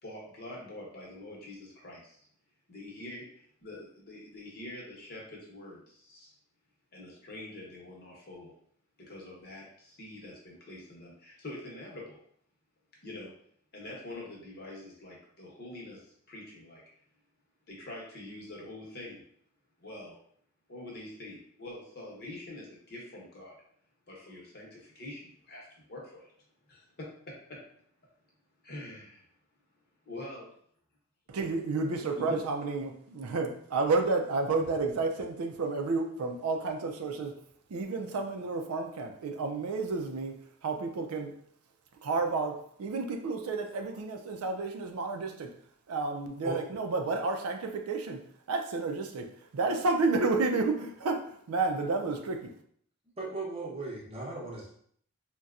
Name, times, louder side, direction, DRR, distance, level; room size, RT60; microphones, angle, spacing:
voice 1, 0.0-2.2 2.7-6.3 6.9-8.5 9.0-12.2 13.0-13.3 13.7-16.8 17.7-19.2 19.8-20.2 20.7-23.5 24.1-26.3 26.7-27.1 28.6-29.2 30.0-30.5 32.1-32.4, left 1 dB, 45° left, -3 dB, 0.9 m, -45 dB
voice 2, 31.3-37.4 37.7-40.4 40.6-41.3 42.0-45.5 45.9-48.2 48.5-49.3 49.5-52.5, right 3 dB, 90° right, 5 dB, 0.4 m, -31 dB
voice 3, 53.2-54.7, right 3 dB, 25° right, -4 dB, 0.7 m, -37 dB
4.0 x 2.2 x 2.4 m, 0.63 s
head